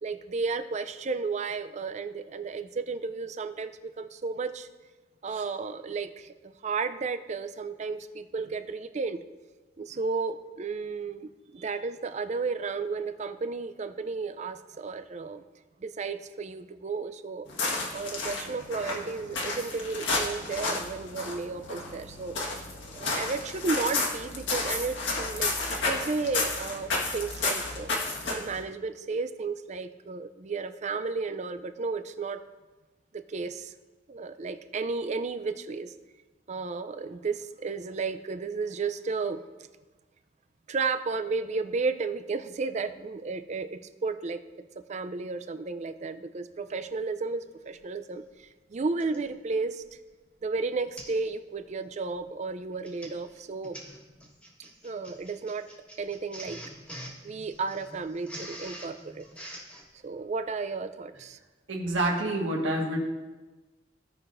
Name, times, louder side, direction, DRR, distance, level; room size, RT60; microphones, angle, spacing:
voice 1, 0.0-4.7 5.2-9.2 9.8-15.4 15.8-17.5 17.9-22.3 22.9-27.9 28.3-32.4 33.1-33.7 34.1-35.9 36.5-39.4 40.7-44.4 44.8-49.8 50.4-53.8 54.8-55.7 56.0-56.6 57.2-59.3 60.0-61.4, right 4 dB, 35° right, 11 dB, 0.4 m, -33 dB
sound 1, 17.5-28.6, left 3 dB, 70° left, 1.5 m, -32 dB
Printer, 47.8-47.9 49.0-49.3 49.8-50.1 50.4-50.5 51.0-51.2 51.6-51.8 52.6-59.9, equal, 5° left, 1.4 m, -45 dB
voice 2, 61.7-63.0, right 1 dB, 70° right, -1 dB, 1.7 m, -28 dB
16.0 x 5.8 x 2.6 m, 1.2 s
head